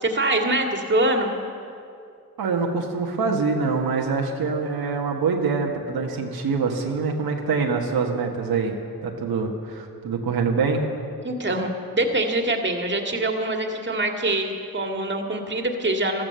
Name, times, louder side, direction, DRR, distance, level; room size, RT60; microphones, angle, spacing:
voice 1, 0.0-1.3 11.2-16.2, right 1 dB, 30° right, 3 dB, 2.1 m, -24 dB
voice 2, 2.4-10.8, right 4 dB, 85° right, 1 dB, 1.5 m, -25 dB
14.0 x 13.5 x 6.9 m, 2.4 s
cardioid pair, 65°, 36 cm